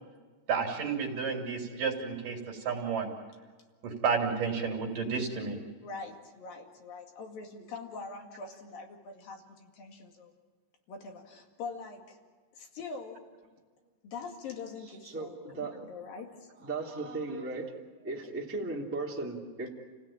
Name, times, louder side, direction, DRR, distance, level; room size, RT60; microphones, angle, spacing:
voice 1, 0.5-3.1 3.8-5.6, right 5 dB, 50° right, 1 dB, 4.2 m, -31 dB
voice 2, 5.8-10.3 10.9-12.2 12.5-13.3 14.0-16.7, left 4 dB, 60° left, 3 dB, 3.7 m, -43 dB
voice 3, 15.0-15.9 16.6-17.7 18.0-19.7, right 3 dB, 5° right, -3 dB, 2.2 m, -36 dB
29.5 x 17.0 x 8.9 m, 1.5 s
omnidirectional pair, 5.0 m